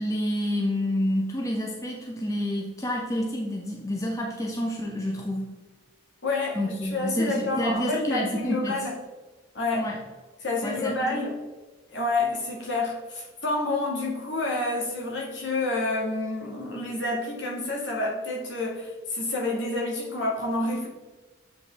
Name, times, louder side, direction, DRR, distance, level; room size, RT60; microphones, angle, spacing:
voice 1, 0.0-5.5 6.5-8.9 9.7-10.0 10.6-11.3, equal, 15° left, 0.7 m, -29 dB
voice 2, 6.2-8.9 9.6-9.9 10.4-11.4 11.9-20.9, left 2 dB, 65° left, 1.7 m, -29 dB
7.7 x 4.9 x 3.4 m
head